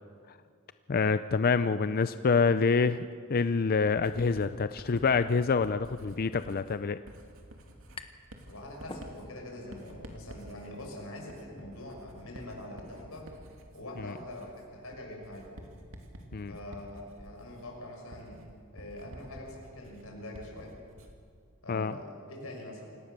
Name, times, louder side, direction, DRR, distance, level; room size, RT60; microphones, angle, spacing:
voice 1, 0.9-7.0 16.3-16.5 21.7-21.9, left 4 dB, 45° left, 12 dB, 0.5 m, -26 dB
Writing, 4.0-21.3, right 1 dB, 65° right, 2.7 m, -50 dB
sound 1, 8.0-8.4 8.7-9.6, left 3 dB, 25° left, 1.2 m, -46 dB
voice 2, 8.5-13.3 13.7-15.5 16.5-18.5 18.7-20.7 21.6-23.0, left 1 dB, 75° left, 0 dB, 6.5 m, -44 dB
28.5 x 18.0 x 6.8 m, 2.3 s
head